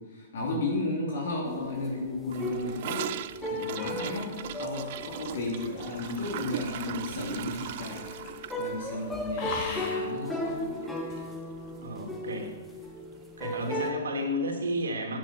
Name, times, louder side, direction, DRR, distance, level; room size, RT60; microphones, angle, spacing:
voice 1, 0.0-3.1 3.5-8.0 8.6-10.9, left 2 dB, 60° left, -2 dB, 3.1 m, -34 dB
sound 1, 1.4-13.9, left 1 dB, 5° left, 1.7 m, -37 dB
Gurgling / Toilet flush, 2.3-10.6 10.8-11.0 11.3-11.7 12.0-12.1 12.4-12.5 13.4-13.5, right 12 dB, 45° right, 0.5 m, -39 dB
sound 2, 2.7-8.5 8.7-9.0 9.3-10.2 11.1-11.2, left 3 dB, 40° left, 2.8 m, -42 dB
voice 2, 11.8-12.5 13.4-15.2, equal, 65° right, 1 dB, 2.9 m, -32 dB
15.0 x 10.0 x 4.5 m, 1.2 s
figure-of-eight pair, 110°, 0 cm